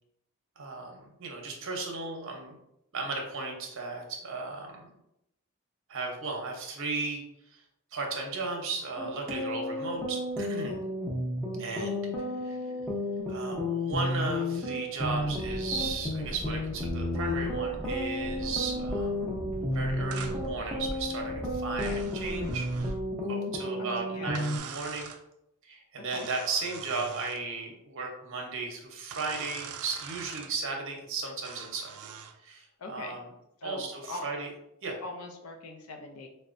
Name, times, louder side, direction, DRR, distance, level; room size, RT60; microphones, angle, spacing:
voice 1, 0.6-2.6 2.9-4.9 5.9-7.6 7.9-10.8 11.6-12.0 12.4-12.7 13.3-19.3 19.7-22.7 23.3-25.1 25.6-32.1 32.4-33.3 33.6-34.5 34.8-35.0, right 3 dB, 60° right, 1 dB, 0.7 m, -35 dB
sound 1, 9.0-24.6, left 1 dB, ahead, 0.6 m, -32 dB
sound 2, 15.0-23.0, equal, 40° left, 0.8 m, -40 dB
sound 3, 20.1-20.4 21.8-23.0 24.3-25.2 26.1-27.4 29.1-30.5 31.4-32.4, right 8 dB, 75° right, 0.3 m, -43 dB
voice 2, 23.8-24.4 26.1-26.3 32.8-33.2 33.6-34.3 35.0-36.3, left 2 dB, 70° left, 3 dB, 0.5 m, -41 dB
4.1 x 2.1 x 2.5 m, 0.81 s
head